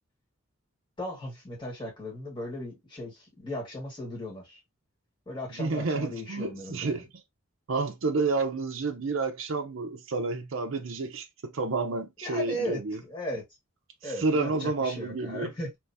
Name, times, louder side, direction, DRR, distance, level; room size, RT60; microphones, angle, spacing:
voice 1, 1.0-4.6 5.3-7.0 12.2-13.4 14.0-15.8, left 1 dB, 25° left, 2.0 m, -37 dB
voice 2, 5.6-7.1 7.7-13.0 14.0-15.5, right 3 dB, 70° right, 0.6 m, -30 dB
3.4 x 3.1 x 2.7 m
head